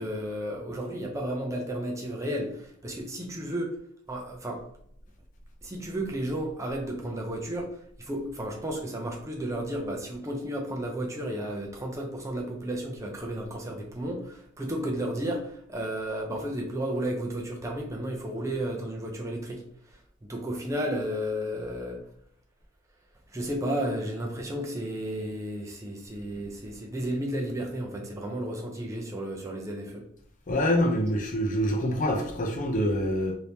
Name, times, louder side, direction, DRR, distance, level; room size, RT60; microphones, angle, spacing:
voice 1, 0.0-3.8 4.1-4.6 5.6-22.0 23.3-30.0, right 1 dB, 15° right, 0 dB, 0.5 m, -33 dB
voice 2, 30.5-33.3, equal, 40° left, 2 dB, 0.6 m, -26 dB
2.9 x 2.7 x 3.3 m, 0.67 s
head